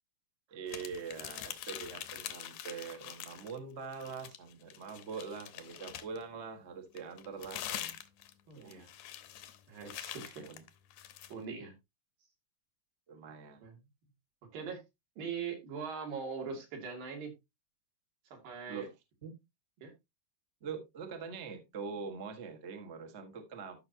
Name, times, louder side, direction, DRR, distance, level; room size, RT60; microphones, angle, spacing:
voice 1, 0.5-7.9 8.5-8.8 10.4-10.6 13.1-13.6 18.7-18.9 19.2-19.3 20.6-23.8, right 5 dB, 45° right, 0.8 m, -43 dB
sound 1, 0.7-3.6 3.9-6.2 7.0-11.3, left 12 dB, 70° left, 2.0 m, -44 dB
voice 2, 8.5-8.9 9.7-10.4 11.3-11.7 13.6-13.8 14.5-14.8 15.2-17.3 18.3-18.9 19.8-19.9, right 5 dB, 85° right, 4.3 m, -41 dB
13.0 x 5.9 x 2.8 m
omnidirectional pair, 3.9 m